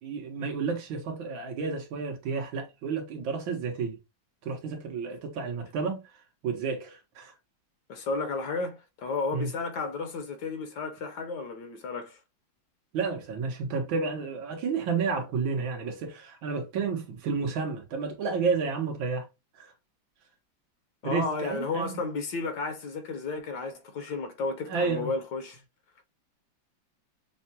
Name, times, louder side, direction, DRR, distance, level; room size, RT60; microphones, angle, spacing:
voice 1, 0.0-4.0 4.5-6.0 6.4-7.3 9.3-9.5 12.9-19.3 19.6-19.7 21.0-22.0 24.7-25.1, right 5 dB, 85° right, 1.9 m, -31 dB
voice 2, 7.9-12.2 21.0-25.6, left 3 dB, 65° left, 1.3 m, -33 dB
6.2 x 2.2 x 2.7 m
omnidirectional pair, 2.1 m